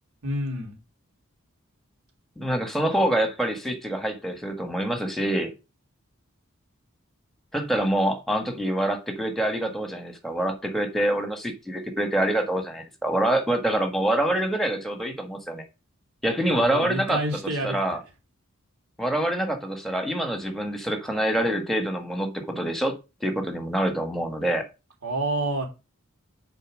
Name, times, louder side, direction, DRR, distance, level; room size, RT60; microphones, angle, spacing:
voice 1, 0.2-0.8 16.5-17.8 25.0-25.7, right 1 dB, 90° right, 3.2 m, -28 dB
voice 2, 2.4-5.5 7.5-15.6 16.2-17.2 17.6-18.0 19.0-24.6, right 1 dB, ahead, 1.4 m, -26 dB
7.0 x 4.5 x 6.2 m
head